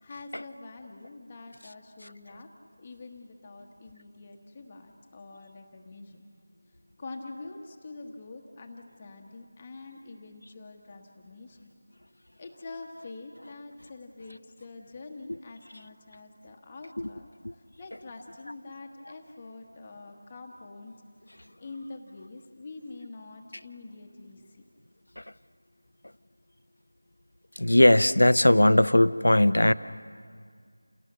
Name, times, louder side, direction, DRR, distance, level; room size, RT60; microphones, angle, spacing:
voice 1, 0.0-2.5 2.8-6.3 7.0-11.7 12.4-20.9 21.6-24.6, left 3 dB, 20° left, 1 dB, 1.3 m, -45 dB
voice 2, 27.6-29.7, left 1 dB, 90° left, 14 dB, 0.7 m, -19 dB
29.0 x 18.0 x 6.8 m, 2.1 s
figure-of-eight pair, 175°, 0 cm